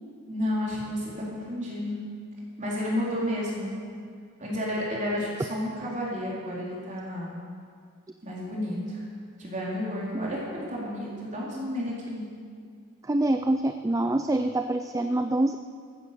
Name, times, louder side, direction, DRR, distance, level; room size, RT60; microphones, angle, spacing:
voice 1, 0.3-2.0 2.6-3.7 4.4-7.3 8.2-9.0 9.4-12.2, left 1 dB, 35° right, -5 dB, 4.0 m, -31 dB
voice 2, 13.0-15.6, right 1 dB, 15° right, 8 dB, 0.4 m, -25 dB
14.0 x 13.5 x 6.9 m, 2.2 s
head